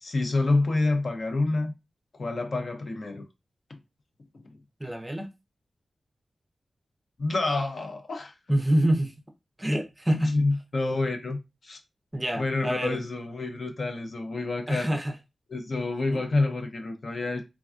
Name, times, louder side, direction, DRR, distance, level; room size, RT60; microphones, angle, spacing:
voice 1, 0.0-1.7 2.1-3.3 4.3-4.4 7.2-8.3 10.1-11.8 12.3-15.0 15.5-17.4, left 2 dB, 55° left, 0.5 m, -28 dB
voice 2, 4.8-5.3 8.5-9.1 9.6-10.3 12.1-13.0 14.7-15.1 16.1-16.2, right 1 dB, 15° right, 0.5 m, -26 dB
3.3 x 2.2 x 2.4 m
wide cardioid pair, 115°, 0 cm